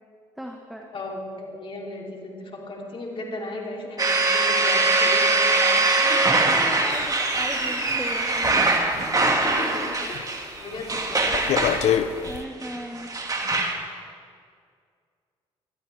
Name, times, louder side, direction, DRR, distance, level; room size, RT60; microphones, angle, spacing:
voice 1, 0.4-0.9 6.1-8.3 12.3-13.1, equal, ahead, 1 dB, 1.4 m, -37 dB
voice 2, 0.9-6.2 9.2-11.8, left 2 dB, 45° left, -1 dB, 3.0 m, -36 dB
sound 1, 4.0-13.7, right 2 dB, 30° right, 2.0 m, -22 dB
sound 2, 6.9-9.7 10.0-10.4 10.7-12.4, left 9 dB, 65° left, 0.7 m, -28 dB
21.0 x 12.5 x 3.4 m, 2.1 s
supercardioid pair, 60°, 12 cm